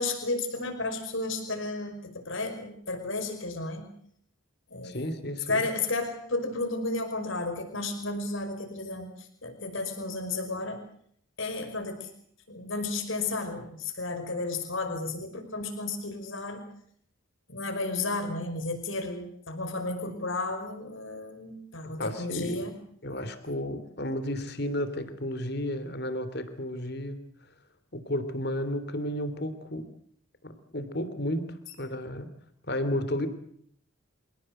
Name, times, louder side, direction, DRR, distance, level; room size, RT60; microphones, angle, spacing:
voice 1, 0.0-3.9 4.7-5.0 5.5-9.1 9.4-10.8 11.4-12.1 12.5-16.6 17.5-22.7, left 2 dB, 65° left, 6 dB, 5.5 m, -33 dB
voice 2, 4.8-5.7 22.0-22.7 23.0-27.3 27.9-29.9 30.4-32.3 32.7-33.3, left 1 dB, 50° left, 11 dB, 3.1 m, -33 dB
27.0 x 17.5 x 7.8 m, 0.66 s
head